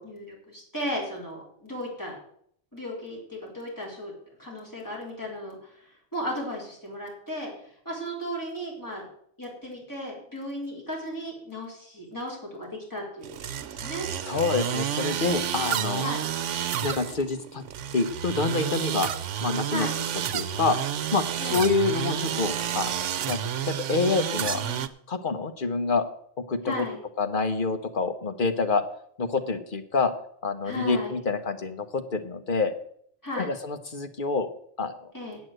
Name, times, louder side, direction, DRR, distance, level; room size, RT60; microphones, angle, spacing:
voice 1, 0.0-2.2 2.7-4.1 4.4-9.0 9.4-14.1 16.0-16.2 19.7-19.9 21.4-21.7 24.4-24.9 26.7-27.0 30.6-31.1 33.2-33.5 35.1-35.4, equal, 15° left, -3 dB, 4.3 m, -35 dB
sound 1, 13.2-24.9, right 10 dB, 85° right, 1.0 m, -30 dB
voice 2, 14.2-16.1 16.8-17.6 17.9-19.1 19.4-19.9 20.3-20.8 21.1-21.3 21.5-23.4 23.7-24.6 25.1-26.0 26.4-26.9 27.2-28.8 29.2-30.1 30.4-32.7 33.4-34.5 34.8-34.9, left 4 dB, 45° left, 8 dB, 1.2 m, -27 dB
8.6 x 7.6 x 7.9 m, 0.66 s
omnidirectional pair, 1.2 m